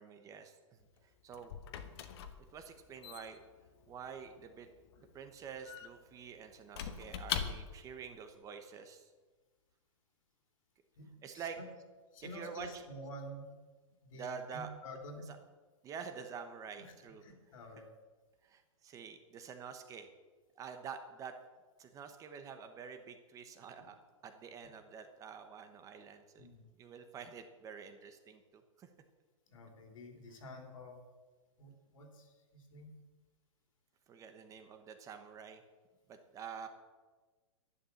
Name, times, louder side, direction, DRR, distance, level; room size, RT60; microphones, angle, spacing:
voice 1, 0.0-1.5 2.5-3.4 3.9-4.7 5.0-9.1 11.2-11.6 12.3-12.8 14.1-14.7 15.8-17.2 18.4-20.1 20.6-21.4 21.8-23.9 24.2-26.5 26.8-28.9 34.1-35.6 36.1-36.7, right 6 dB, 20° right, 7 dB, 1.1 m, -48 dB
Squeak / Wood, 0.8-8.0, left 8 dB, 50° left, 1.4 m, -44 dB
voice 2, 11.0-11.7 12.1-13.5 14.0-15.3 16.8-16.9 17.2-17.9 26.4-26.6 29.5-31.0 31.6-33.0, left 1 dB, 75° left, 3 dB, 3.7 m, -49 dB
11.0 x 11.0 x 7.1 m, 1.3 s
hypercardioid pair, 150°, 17 cm